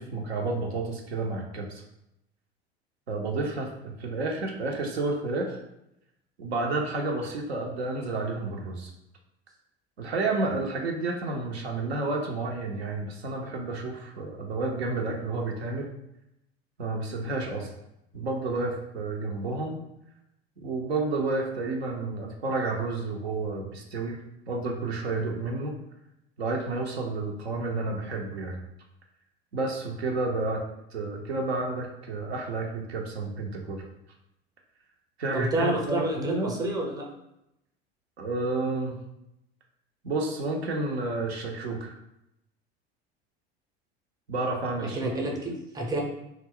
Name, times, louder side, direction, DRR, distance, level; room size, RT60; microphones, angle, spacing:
voice 1, 0.0-1.8 3.1-5.6 6.4-8.9 10.0-15.9 16.8-17.7 18.1-19.8 20.6-24.2 24.5-25.7 26.4-28.6 29.5-30.6 30.9-33.8 35.2-36.5 38.2-39.0 40.0-41.9 44.3-45.0 45.3-45.4, right 3 dB, 80° right, 1 dB, 0.5 m, -30 dB
voice 2, 35.3-37.1 44.8-46.0, right 1 dB, 10° right, 1 dB, 0.6 m, -29 dB
2.2 x 2.0 x 3.6 m, 0.84 s
figure-of-eight pair, 75°, 31 cm